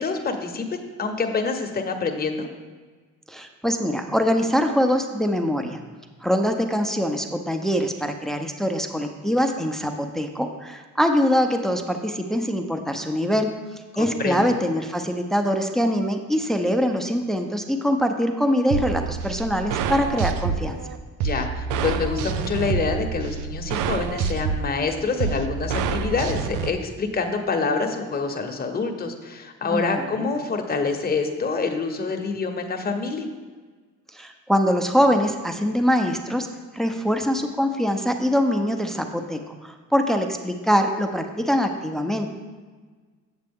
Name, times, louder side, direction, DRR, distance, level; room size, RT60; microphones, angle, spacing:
voice 1, 0.0-2.5 13.9-14.5 21.2-33.3, left 4 dB, 30° left, 4 dB, 1.0 m, -26 dB
voice 2, 3.3-5.8 6.2-20.8 29.7-30.3 34.1-36.5 36.7-42.3, equal, ahead, 5 dB, 0.6 m, -23 dB
sound 1, 18.7-26.7, right 5 dB, 90° right, 0.5 m, -27 dB
7.8 x 7.3 x 3.6 m, 1.4 s
cardioid pair, 90°, 30 cm